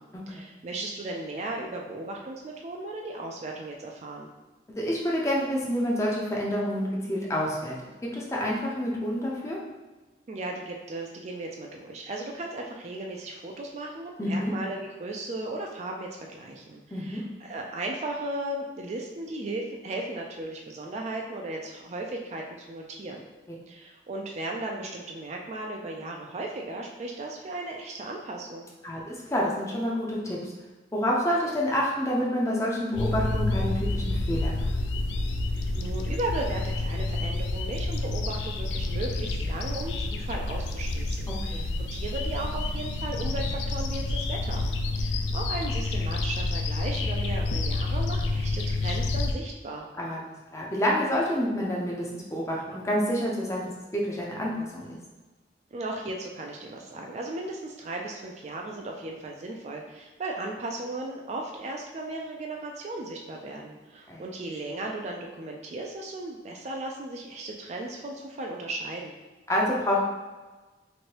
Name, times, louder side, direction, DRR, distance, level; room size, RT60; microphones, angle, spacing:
voice 1, 0.3-4.3 10.3-23.2 23.7-28.7 35.5-44.7 45.0-49.9 55.7-69.1, right 2 dB, 35° right, 1 dB, 0.3 m, -36 dB
voice 2, 4.8-7.8 8.0-9.6 14.2-14.5 16.9-17.2 28.8-30.5 30.9-34.7 41.3-41.7 50.0-50.2 50.5-55.0 64.1-64.2 69.5-70.0, equal, 15° left, -3 dB, 0.5 m, -28 dB
sound 1, 32.9-49.3, left 2 dB, 75° left, 0.3 m, -29 dB
3.1 x 2.6 x 2.9 m, 1.2 s
head